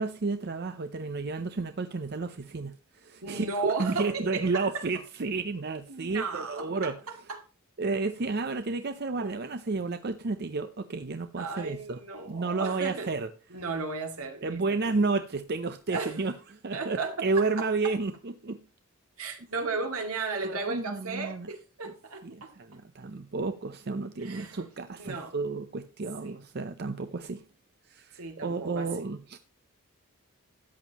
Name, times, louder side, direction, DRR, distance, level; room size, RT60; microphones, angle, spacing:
voice 1, 0.0-7.0 7.8-12.0 12.3-13.3 14.4-16.3 16.6-18.6 20.4-21.5 22.2-27.4 27.9-29.4, right 3 dB, 50° right, 0.6 m, -31 dB
voice 2, 3.2-4.9 5.9-7.4 9.2-9.3 11.4-13.1 13.5-15.0 15.9-16.3 16.7-17.7 19.2-22.5 24.2-24.6 25.0-25.3 26.2-26.4 28.1-29.1, right 4 dB, 80° right, 2.3 m, -35 dB
13.5 x 9.2 x 2.9 m
head